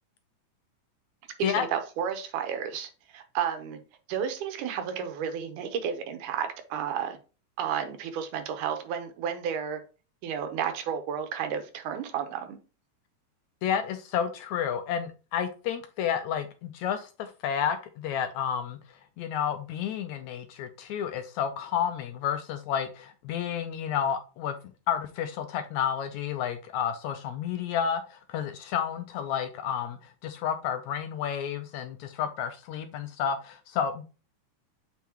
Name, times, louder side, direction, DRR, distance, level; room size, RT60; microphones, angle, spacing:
voice 1, 1.4-3.8 4.1-7.2 7.6-9.8 10.2-12.6, right 8 dB, 75° right, 2.5 m, -32 dB
voice 2, 13.6-18.8 19.2-24.6 24.9-34.0, left 8 dB, 80° left, 1.8 m, -31 dB
7.1 x 5.7 x 2.9 m
omnidirectional pair, 3.7 m